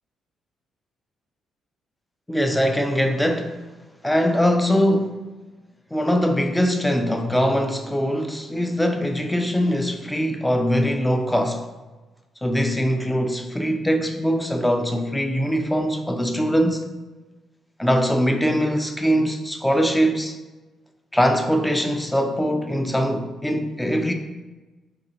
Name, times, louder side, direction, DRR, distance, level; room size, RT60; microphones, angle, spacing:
voice 1, 2.3-3.6 4.0-5.2 5.9-11.7 12.4-16.9 17.8-20.4 21.1-24.1, equal, 5° left, 0.4 m, -22 dB
3.8 x 2.9 x 2.8 m
cardioid pair, 90°, 0 cm